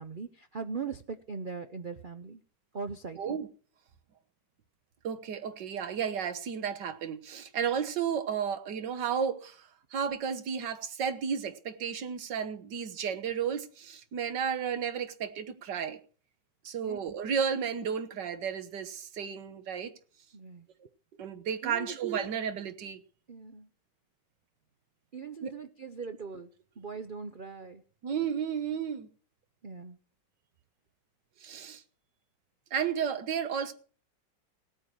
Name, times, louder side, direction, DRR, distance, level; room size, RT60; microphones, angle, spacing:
voice 1, 0.0-2.4 2.7-3.2 16.8-17.0 20.3-20.7 21.6-22.0 23.3-23.7 25.1-26.5 26.8-27.8 29.6-30.0, right 5 dB, 55° right, 0.5 m, -40 dB
voice 2, 3.2-3.5 5.0-16.0 16.6-19.9 21.2-23.0 25.4-25.5 28.0-29.1 31.4-31.8 32.7-33.7, right 7 dB, 75° right, 1.8 m, -33 dB
17.0 x 8.9 x 6.2 m
omnidirectional pair, 1.9 m